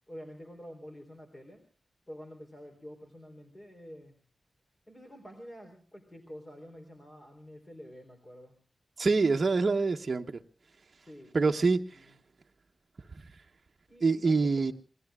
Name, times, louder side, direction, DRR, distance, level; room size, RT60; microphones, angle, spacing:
voice 1, 0.1-1.6 2.1-4.2 4.9-8.6 11.0-12.2 13.9-14.7, equal, 25° left, 3.8 m, -48 dB
voice 2, 9.0-10.3 11.3-11.9 14.0-14.7, right 4 dB, 40° right, 0.9 m, -25 dB
28.0 x 21.5 x 2.4 m
wide cardioid pair, 145°, 0 cm